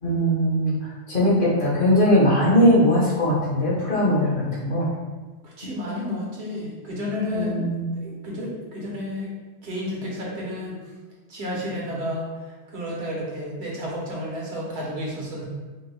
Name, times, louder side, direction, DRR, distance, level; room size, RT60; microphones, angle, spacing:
voice 1, 0.0-0.7 1.1-4.9 7.3-7.8, equal, 50° left, -6 dB, 1.3 m, -20 dB
voice 2, 5.4-7.7 7.9-9.3 9.6-10.8 11.3-15.5, left 1 dB, 75° right, -4 dB, 1.3 m, -31 dB
5.1 x 2.3 x 3.3 m, 1.3 s
omnidirectional pair, 1.2 m